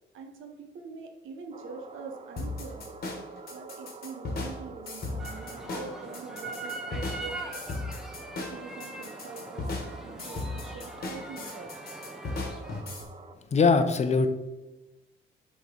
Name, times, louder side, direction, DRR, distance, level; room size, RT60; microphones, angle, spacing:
voice 1, 0.1-3.0 3.5-7.4 8.4-9.7 10.0-11.7, right 4 dB, 80° right, 4 dB, 1.1 m, -44 dB
sound 1, 1.5-13.4, right 4 dB, 30° right, 0.6 m, -47 dB
sound 2, 2.4-13.0, left 3 dB, 50° left, 1.5 m, -36 dB
sound 3, 5.2-12.8, right 2 dB, ahead, 1.0 m, -42 dB
voice 2, 13.5-14.3, left 4 dB, 35° left, 8 dB, 0.8 m, -21 dB
6.6 x 3.2 x 5.2 m, 1.0 s
cardioid pair, 90°, 20 cm